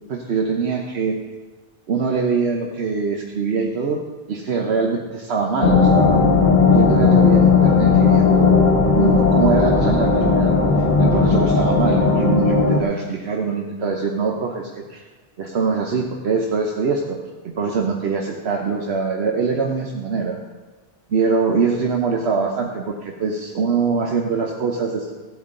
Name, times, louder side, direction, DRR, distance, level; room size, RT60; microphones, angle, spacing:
voice 1, 0.1-1.2 1.9-4.0 4.3-6.2 6.7-10.5 10.8-15.0 15.4-20.4 21.1-25.1, right 5 dB, 80° right, 1 dB, 1.2 m, -23 dB
sound 1, 5.6-12.8, left 4 dB, 50° left, 1.3 m, -15 dB
17.0 x 8.1 x 3.8 m, 1.3 s
omnidirectional pair, 1.1 m